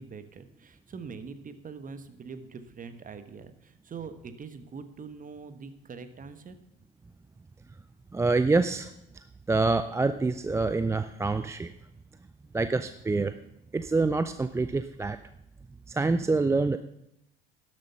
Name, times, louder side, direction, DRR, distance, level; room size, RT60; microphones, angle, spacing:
voice 1, 0.0-6.6, right 5 dB, 30° right, 11 dB, 1.2 m, -43 dB
voice 2, 8.1-8.9 9.5-11.7 12.5-13.3 13.7-15.2 15.9-16.8, right 3 dB, 10° right, 11 dB, 0.4 m, -26 dB
12.0 x 7.7 x 5.7 m, 0.80 s
figure-of-eight pair, 65°, 30 cm